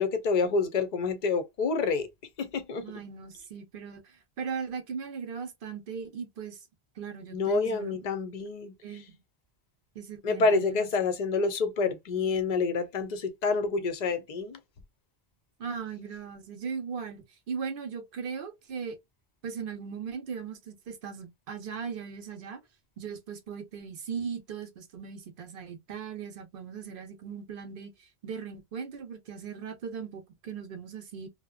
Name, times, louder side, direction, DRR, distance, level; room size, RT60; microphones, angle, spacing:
voice 1, 0.0-2.1 2.4-2.9 7.3-8.7 10.2-14.6, left 4 dB, 50° left, 0.6 m, -28 dB
voice 2, 2.8-6.6 7.0-8.0 8.8-9.2 10.0-10.9 15.6-19.0 19.4-22.6 23.0-27.9 28.2-31.3, right 6 dB, 65° right, 0.8 m, -38 dB
2.7 x 2.0 x 2.3 m
omnidirectional pair, 1.1 m